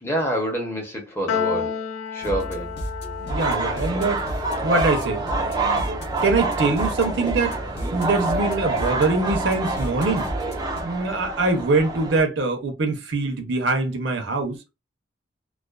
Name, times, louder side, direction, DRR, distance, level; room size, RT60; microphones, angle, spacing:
voice 1, 0.0-1.7 2.1-2.7, right 1 dB, 10° left, 0.7 m, -27 dB
Piano, 1.3-7.8, left 7 dB, 80° left, 0.3 m, -33 dB
sound 1, 2.2-10.8, equal, 55° left, 0.8 m, -33 dB
sound 2, 3.3-12.2, right 2 dB, 20° right, 0.4 m, -27 dB
voice 2, 3.3-4.2 4.6-7.6 7.9-10.3 10.8-14.6, right 3 dB, 65° right, 0.6 m, -23 dB
2.4 x 2.3 x 2.3 m
head